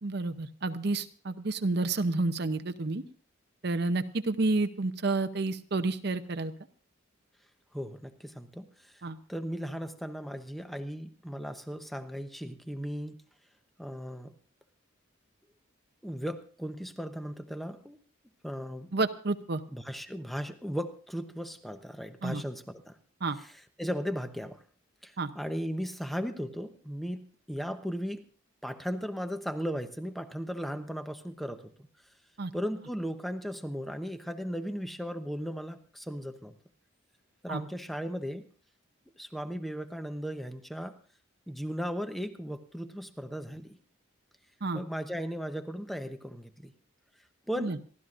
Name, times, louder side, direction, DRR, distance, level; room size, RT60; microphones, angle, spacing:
voice 1, 0.0-3.0 3.6-6.5 9.0-9.2 18.9-19.6 22.2-22.4 23.2-23.4 25.2-25.3 32.4-32.5 37.5-37.6 44.6-44.8 47.6-47.8, right 3 dB, 50° right, 8 dB, 0.7 m, -30 dB
voice 2, 7.7-8.9 9.3-13.2 13.8-14.3 16.0-18.0 18.4-18.9 19.7-23.0 23.4-23.5 23.8-24.6 25.0-28.2 28.6-31.7 32.5-36.5 37.4-38.5 39.2-41.0 41.5-43.8 44.7-46.7 47.5-47.7, equal, ahead, 8 dB, 0.8 m, -36 dB
27.5 x 12.5 x 2.5 m, 0.40 s
head